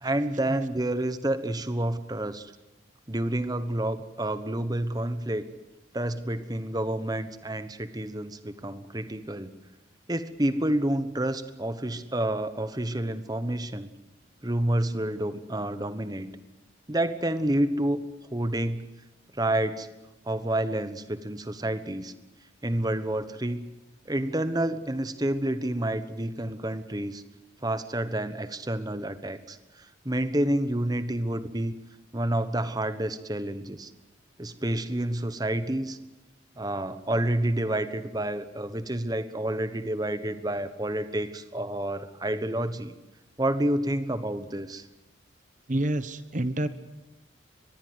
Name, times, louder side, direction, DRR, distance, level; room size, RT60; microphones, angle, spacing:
voice 1, 0.0-2.5 3.1-5.4 5.9-9.5 10.1-13.9 14.4-16.4 16.9-18.0 18.3-18.8 19.3-19.9 20.2-22.1 22.6-23.6 24.1-27.2 27.6-31.7 32.1-33.9 34.4-36.0 36.6-42.9 43.4-44.8, right 1 dB, 20° right, 11 dB, 1.2 m, -29 dB
voice 2, 45.7-46.7, right 1 dB, 40° right, 12 dB, 1.2 m, -28 dB
24.0 x 20.5 x 8.1 m, 1.0 s
head